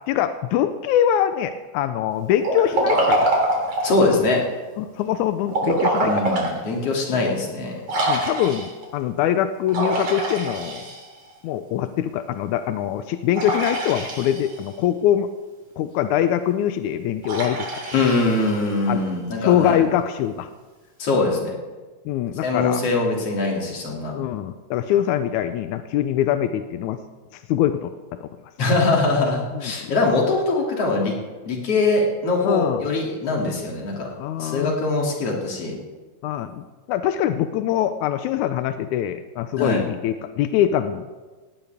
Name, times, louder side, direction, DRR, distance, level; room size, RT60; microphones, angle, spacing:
voice 1, 0.0-3.4 4.8-6.4 7.1-7.3 8.1-10.9 11.4-15.3 15.8-17.7 18.9-19.0 19.4-20.5 22.1-22.9 24.1-27.0 27.3-28.3 29.5-29.9 32.4-32.8 34.2-34.7 36.2-41.1, left 10 dB, 90° left, 10 dB, 2.1 m, -23 dB
Liquid, 2.4-4.0 5.5-6.5 7.0-7.1 7.9-8.8 9.7-11.3 13.3-14.7 17.2-18.9, right 1 dB, 55° right, 4.3 m, -24 dB
voice 2, 3.8-4.4 6.0-7.8 17.9-19.8 21.0-21.5 22.4-24.1 28.6-31.2 31.4-34.1 34.4-35.7 39.6-39.8, left 3 dB, 55° left, -1 dB, 3.7 m, -22 dB
18.5 x 17.5 x 3.6 m, 1.3 s
omnidirectional pair, 3.3 m